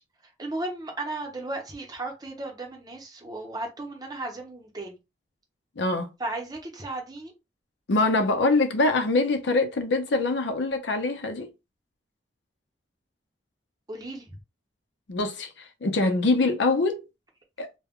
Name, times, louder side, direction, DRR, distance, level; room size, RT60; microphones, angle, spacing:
voice 1, 0.4-5.0 6.2-7.3 13.9-14.2, right 2 dB, 20° right, 0.8 m, -35 dB
voice 2, 5.8-6.1 7.9-11.5 15.1-17.0 17.6-17.7, left 2 dB, 70° left, 0.6 m, -24 dB
2.2 x 2.2 x 3.6 m
head